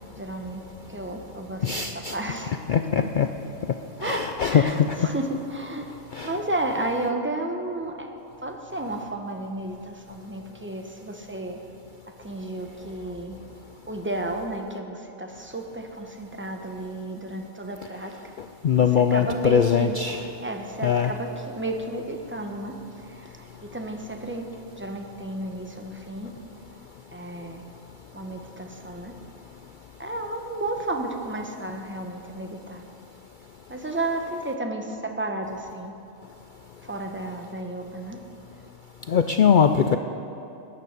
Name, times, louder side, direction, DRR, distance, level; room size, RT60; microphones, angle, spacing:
voice 1, 0.2-0.6 0.9-1.7 1.9-2.6 4.0-8.1 8.4-11.6 12.1-13.4 13.9-18.1 18.8-20.0 20.4-22.7 23.1-24.5 24.8-26.3 27.1-27.6 28.1-29.1 30.0-32.8 33.7-35.9 36.8-38.2, right 2 dB, 10° right, 3 dB, 0.9 m, -32 dB
voice 2, 1.6-2.2 2.7-3.3 4.0-5.1 6.1-6.3 18.6-20.3 20.8-21.1 39.1-40.0, left 7 dB, 85° left, 8 dB, 0.4 m, -21 dB
14.0 x 9.8 x 6.5 m, 2.8 s
omnidirectional pair, 1.4 m